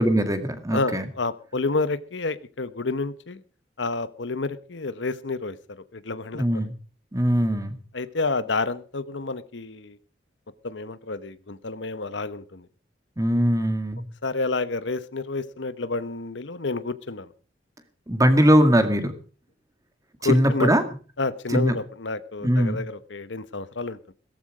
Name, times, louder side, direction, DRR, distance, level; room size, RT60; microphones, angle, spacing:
voice 1, 0.0-1.1 6.3-6.7 7.1-7.7 13.2-14.1 18.1-19.1 20.2-20.8 21.5-21.8 22.4-22.8, equal, 20° right, 9 dB, 2.1 m, -20 dB
voice 2, 0.7-3.4 3.8-6.7 7.9-10.0 10.6-12.7 14.2-17.3 20.2-20.8 21.2-24.1, left 3 dB, 70° left, 14 dB, 1.1 m, -29 dB
17.0 x 14.0 x 4.9 m, 0.39 s
head